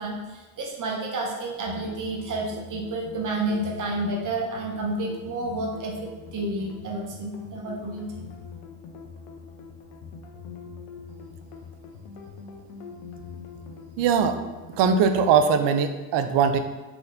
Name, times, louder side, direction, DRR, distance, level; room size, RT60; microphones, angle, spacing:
voice 1, 0.0-8.3, right 2 dB, 40° right, 0 dB, 1.0 m, -30 dB
sound 1, 1.7-15.4, left 5 dB, 75° left, 0.8 m, -43 dB
voice 2, 14.0-14.4 14.8-16.6, right 6 dB, 60° right, 8 dB, 0.6 m, -21 dB
4.3 x 3.9 x 2.7 m, 1.2 s
supercardioid pair, 80°, 48 cm